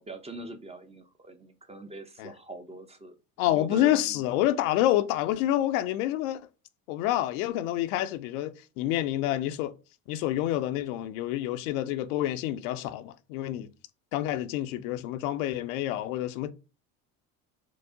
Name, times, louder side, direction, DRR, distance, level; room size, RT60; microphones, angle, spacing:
voice 1, 0.0-3.1 3.4-4.2, right 2 dB, 15° right, 0.5 m, -42 dB
voice 2, 3.4-6.4 6.9-9.7 10.1-13.7 14.1-16.5, left 13 dB, 80° left, 0.5 m, -28 dB
4.6 x 2.0 x 2.6 m
supercardioid pair, 85°, 42 cm